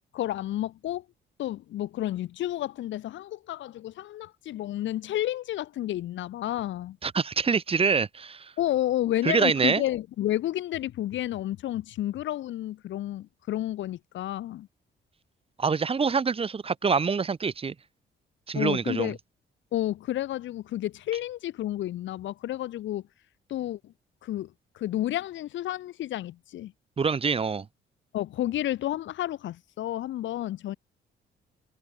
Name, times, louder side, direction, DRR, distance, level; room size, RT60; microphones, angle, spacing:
voice 1, 0.1-1.0 1.4-7.0 8.6-14.7 18.5-19.2 19.7-23.0 23.5-23.9 24.2-26.7 28.1-30.8, left 13 dB, 70° left, 0.8 m, -31 dB
voice 2, 7.0-8.5 9.2-9.8 15.6-17.7 18.5-19.1 27.0-27.7, right 5 dB, 30° right, 0.8 m, -25 dB
cardioid pair, 90°, 20 cm